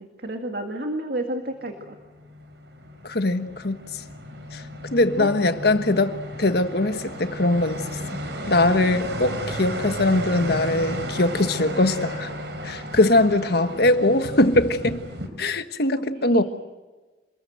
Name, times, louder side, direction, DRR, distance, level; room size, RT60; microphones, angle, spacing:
voice 1, 0.0-2.0 5.2-5.3 16.1-16.4, right 1 dB, 60° right, 4 dB, 2.1 m, -30 dB
sound 1, 1.8-15.3, equal, 80° right, 4.2 m, -34 dB
voice 2, 3.0-3.8 4.5-4.6 4.9-7.8 8.5-12.3 12.6-15.0 15.4-16.4, left 2 dB, 65° left, 9 dB, 1.5 m, -21 dB
28.0 x 21.0 x 8.0 m, 1.2 s
head